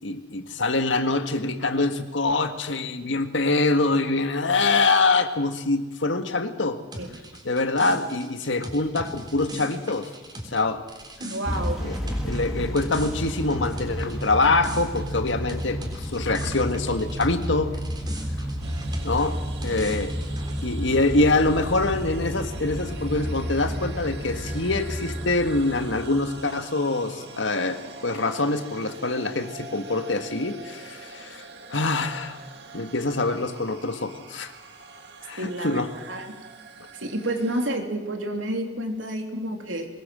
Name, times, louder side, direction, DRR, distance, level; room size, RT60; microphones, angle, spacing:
voice 1, 0.0-6.8 7.4-10.1 10.4-10.8 11.8-17.7 18.4-18.5 19.0-19.4 19.6-20.2 20.6-32.4 32.7-34.5 35.2-35.9, left 3 dB, 75° left, 8 dB, 1.8 m, -25 dB
sound 1, 6.9-17.5 17.7-20.6, right 1 dB, 20° right, 3.7 m, -40 dB
voice 2, 11.2-11.8 35.4-36.3 37.0-39.9, right 1 dB, 90° right, 4 dB, 3.3 m, -30 dB
Motor vehicle (road) / Engine starting / Accelerating revving vroom, 11.4-26.4, equal, ahead, 3.2 m, -31 dB
sound 2, 18.6-37.7, right 3 dB, 60° right, 2.2 m, -44 dB
22.5 x 20.0 x 7.7 m, 1.2 s
head